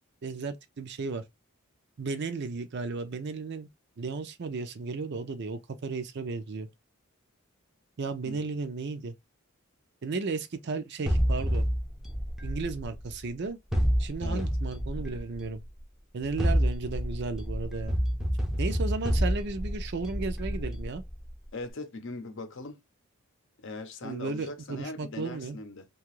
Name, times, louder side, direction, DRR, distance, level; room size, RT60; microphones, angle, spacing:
voice 1, 0.2-1.2 2.0-3.7 4.0-6.7 8.0-9.1 10.0-11.6 12.4-13.6 14.0-15.6 16.1-18.0 18.6-21.0 24.0-25.6, right 4 dB, 50° right, 0.5 m, -34 dB
voice 2, 8.2-8.6 14.2-14.5 21.5-22.8 23.6-25.9, left 2 dB, 60° left, 0.6 m, -40 dB
sound 1, 11.1-13.2 13.7-15.5 16.2-21.3, equal, ahead, 0.5 m, -29 dB
2.8 x 2.3 x 3.0 m
head